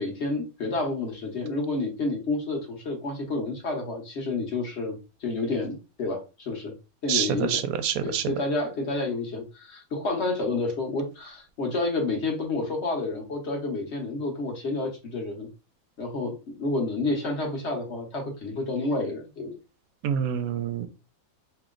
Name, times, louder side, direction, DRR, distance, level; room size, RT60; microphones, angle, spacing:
voice 1, 0.0-6.7 7.0-7.6 8.0-15.5 16.0-19.5, left 2 dB, 50° left, 1.3 m, -29 dB
voice 2, 7.1-8.2 20.0-20.9, right 8 dB, 80° right, 1.0 m, -27 dB
3.0 x 3.0 x 3.8 m
omnidirectional pair, 1.5 m